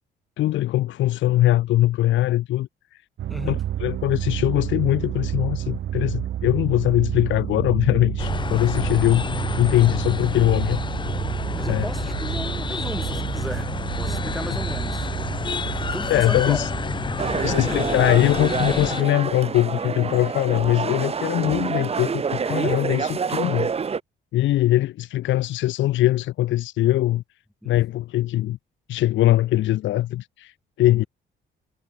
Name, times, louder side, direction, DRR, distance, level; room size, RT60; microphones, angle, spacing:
voice 1, 0.4-3.0 3.4-9.3 9.6-10.8 11.7-11.9 16.1-16.7 17.4-23.7 24.3-27.2 27.6-28.6 28.9-31.0, left 14 dB, 70° left, 0.6 m, -21 dB
sound 1, 3.2-17.7, right 11 dB, 70° right, 3.2 m, -30 dB
voice 2, 3.3-3.6 11.5-15.1 15.8-16.6 17.4-17.8 27.6-27.8 31.0-31.1, equal, ahead, 2.6 m, -35 dB
sound 2, 8.2-19.0, left 5 dB, 25° left, 0.5 m, -29 dB
sound 3, 17.2-24.0, right 6 dB, 30° right, 0.8 m, -27 dB
cardioid pair, 90°, 20 cm